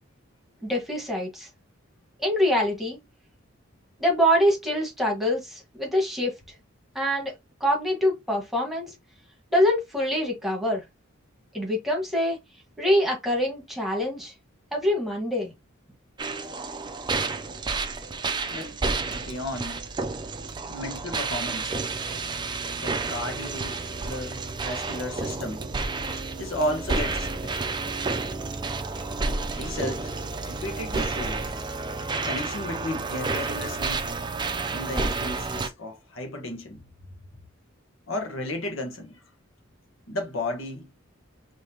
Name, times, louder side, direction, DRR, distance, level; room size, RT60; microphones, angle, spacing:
voice 1, 0.6-1.5 2.2-3.0 4.0-6.3 6.9-7.3 7.6-8.9 9.5-10.8 11.5-12.4 12.8-14.3 14.7-15.5, equal, ahead, 1.5 m, -24 dB
sound 1, 16.2-35.7, right 3 dB, 20° right, 0.5 m, -30 dB
voice 2, 19.1-19.9 20.7-21.7 22.8-25.6 26.4-27.7 29.5-30.1 30.4-31.4 32.2-34.1 34.7-36.8 38.1-39.2 40.1-40.9, left 1 dB, 70° left, 1.2 m, -33 dB
5.0 x 2.9 x 2.8 m
head